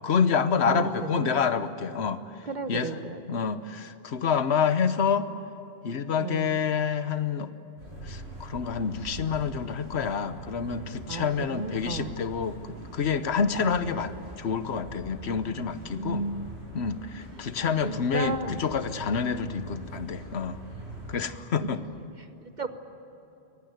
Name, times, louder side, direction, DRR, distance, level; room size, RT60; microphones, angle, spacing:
voice 1, 0.0-2.2 2.7-2.9 3.3-5.3 5.8-7.5 8.0-16.3 16.7-20.6 21.1-21.8, left 6 dB, 80° left, 12 dB, 1.2 m, -28 dB
voice 2, 0.6-1.4 2.4-3.2 6.2-6.6 11.1-12.1 13.6-14.0 16.0-16.6 17.8-18.6 22.2-22.7, right 3 dB, 45° right, 8 dB, 1.3 m, -33 dB
sound 1, 7.8-21.2, right 1 dB, 85° right, 8.5 m, -43 dB
23.0 x 18.5 x 9.4 m, 3.0 s
omnidirectional pair, 1.1 m